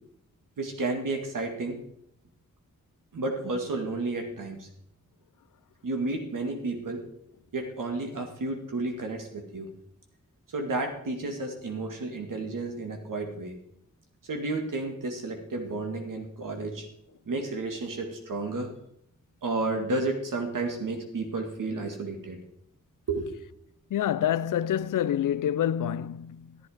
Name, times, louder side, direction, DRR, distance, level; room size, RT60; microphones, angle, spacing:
voice 1, 0.6-1.8 3.1-4.7 5.8-7.0 7.5-9.7 10.5-13.5 14.3-16.9 17.3-18.7 19.4-22.4 23.1-23.3, right 2 dB, 85° right, 2.0 m, -32 dB
voice 2, 23.9-26.6, left 10 dB, 80° left, 0.5 m, -27 dB
11.0 x 9.8 x 5.0 m
cardioid pair, 50°, 31 cm